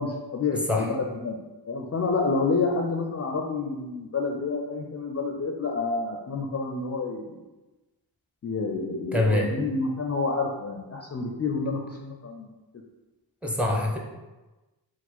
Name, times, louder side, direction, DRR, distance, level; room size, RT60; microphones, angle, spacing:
voice 1, 0.0-1.4 1.7-7.4 8.4-12.5, left 4 dB, 35° left, 1 dB, 0.4 m, -29 dB
voice 2, 9.1-9.5 13.4-14.0, left 1 dB, 5° right, 0 dB, 0.7 m, -24 dB
4.4 x 2.1 x 4.2 m, 1.1 s
cardioid pair, 60°, 43 cm